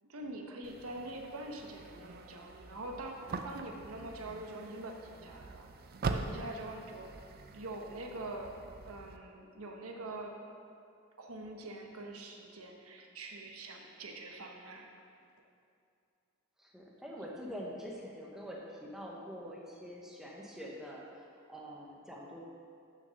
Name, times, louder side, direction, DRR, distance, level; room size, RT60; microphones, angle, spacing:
voice 1, 0.0-5.7 6.0-7.1 7.5-10.3 11.2-14.9, right 2 dB, 85° right, 2 dB, 1.0 m, -44 dB
sound 1, 0.6-9.2, right 3 dB, 45° right, 0.4 m, -43 dB
voice 2, 1.3-1.7 16.6-22.4, equal, ahead, -3 dB, 0.9 m, -45 dB
6.6 x 6.3 x 6.4 m, 2.5 s
head